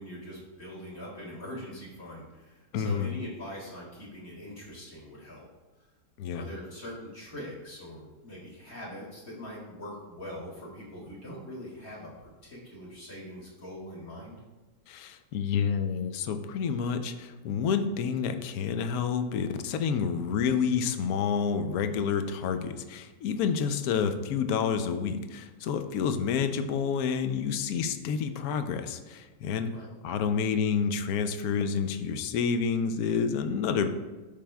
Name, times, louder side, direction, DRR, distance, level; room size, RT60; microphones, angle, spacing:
voice 1, 0.0-5.5 6.3-14.4 29.7-29.9, left 1 dB, 50° left, -6 dB, 2.5 m, -42 dB
voice 2, 2.7-3.1 6.2-6.5 14.9-33.9, left 6 dB, 70° left, 9 dB, 0.9 m, -29 dB
12.5 x 5.2 x 2.3 m, 1.2 s
omnidirectional pair, 1.9 m